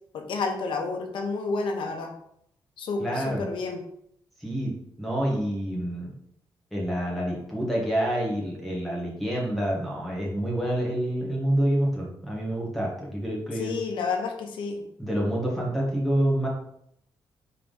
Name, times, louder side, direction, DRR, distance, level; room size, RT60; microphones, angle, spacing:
voice 1, 0.1-2.1 2.8-3.8 13.5-14.8, left 4 dB, 90° left, 4 dB, 0.9 m, -30 dB
voice 2, 3.0-3.5 4.4-4.7 5.0-6.1 6.7-13.7 15.0-16.5, right 1 dB, ahead, -4 dB, 1.7 m, -27 dB
4.6 x 3.8 x 5.4 m, 0.73 s
wide cardioid pair, 145°, 8 cm